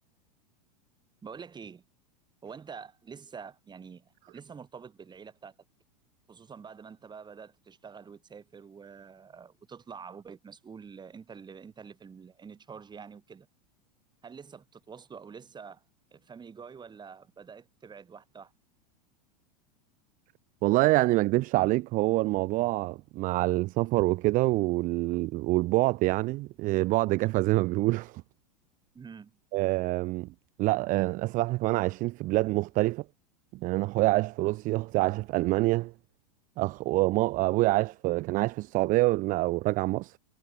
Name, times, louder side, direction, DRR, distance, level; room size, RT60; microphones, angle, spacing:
voice 1, 1.2-1.8 2.4-5.5 6.3-13.5 14.2-15.8 16.1-18.5 28.9-29.4, right 6 dB, 20° right, 3.8 m, -47 dB
voice 2, 20.6-28.2 29.5-30.3 30.6-33.0 33.6-35.9 36.6-40.2, right 20 dB, 40° right, 0.6 m, -26 dB
hypercardioid pair, 95°, 21 cm